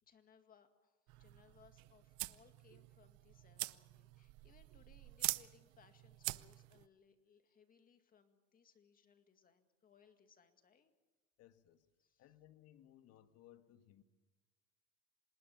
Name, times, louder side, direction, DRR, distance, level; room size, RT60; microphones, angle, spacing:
voice 1, 0.0-10.9 12.0-12.3, left 6 dB, 30° left, 2.1 m, -68 dB
sound 1, 1.1-6.8, right 22 dB, 75° right, 0.8 m, -45 dB
voice 2, 11.4-11.9 12.2-14.0, left 12 dB, 55° left, 1.6 m, -63 dB
26.5 x 20.0 x 7.1 m
cardioid pair, 145°, 29 cm